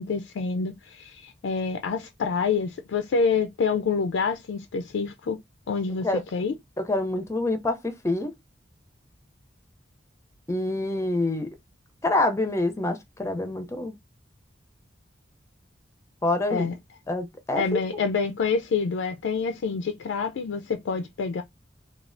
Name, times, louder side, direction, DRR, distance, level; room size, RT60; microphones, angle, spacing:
voice 1, 0.0-5.4 5.7-6.5 16.5-16.7 17.6-21.4, left 5 dB, 75° left, 0.3 m, -27 dB
voice 2, 6.8-8.3 10.5-11.5 12.0-14.0 16.2-16.7 17.1-17.8, left 2 dB, 15° left, 0.5 m, -26 dB
3.2 x 2.3 x 2.5 m
head